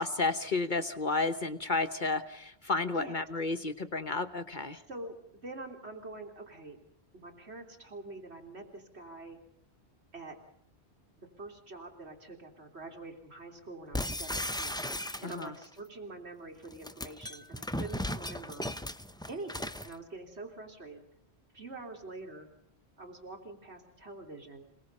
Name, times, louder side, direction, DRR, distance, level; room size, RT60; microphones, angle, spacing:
voice 1, 0.0-4.8 15.2-15.5, left 3 dB, 45° left, 10 dB, 1.2 m, -32 dB
voice 2, 2.7-3.3 4.9-6.8 7.1-9.4 10.1-10.4 11.2-18.7 19.3-21.0 21.5-22.5 23.0-24.6, right 2 dB, 75° right, 3 dB, 3.6 m, -45 dB
sound 1, 13.9-15.6 16.6-19.9, left 1 dB, 5° left, 0.6 m, -36 dB
29.5 x 19.0 x 5.5 m, 0.72 s
omnidirectional pair, 1.1 m